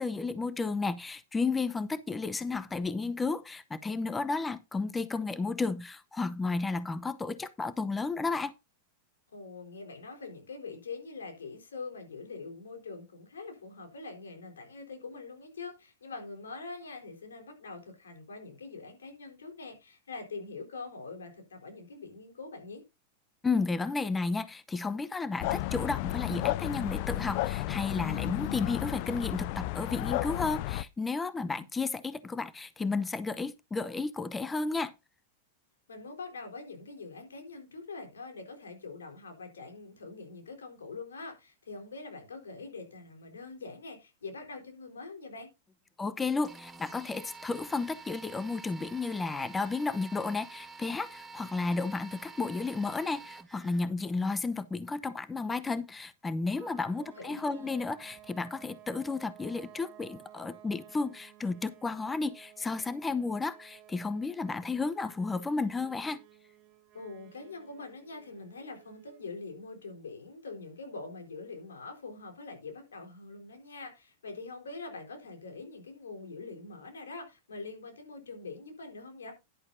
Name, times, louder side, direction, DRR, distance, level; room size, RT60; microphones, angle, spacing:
voice 1, 0.0-8.5 23.4-34.9 46.0-66.2, left 3 dB, 15° left, 0.8 m, -33 dB
voice 2, 9.3-22.8 31.6-31.7 35.9-45.5 57.0-57.9 66.9-79.3, left 3 dB, 90° left, 4.1 m, -44 dB
sound 1, 25.4-30.8, left 17 dB, 55° left, 0.5 m, -32 dB
sound 2, 46.4-53.8, right 4 dB, 10° right, 1.5 m, -48 dB
sound 3, 56.5-69.3, right 12 dB, 40° right, 2.3 m, -55 dB
11.0 x 10.5 x 2.7 m
hypercardioid pair, 110°, 0 cm